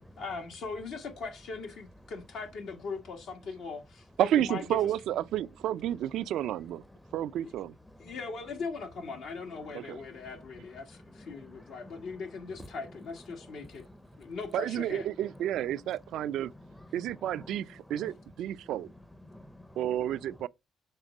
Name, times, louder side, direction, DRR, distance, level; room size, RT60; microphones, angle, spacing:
voice 1, 0.2-4.9 7.4-7.5 8.0-13.9 14.2-15.1, left 4 dB, 80° left, 1.7 m, -40 dB
voice 2, 4.2-6.8 7.1-7.7 9.7-10.0 14.5-16.5 16.9-18.9 19.8-20.5, right 11 dB, 80° right, 0.3 m, -31 dB
voice 3, 11.2-12.1 13.9-14.3 16.2-16.3 16.6-17.6 17.9-18.2 19.3-19.9, left 1 dB, 5° left, 0.6 m, -51 dB
6.6 x 3.6 x 6.0 m
cardioid pair, 90°, 0 cm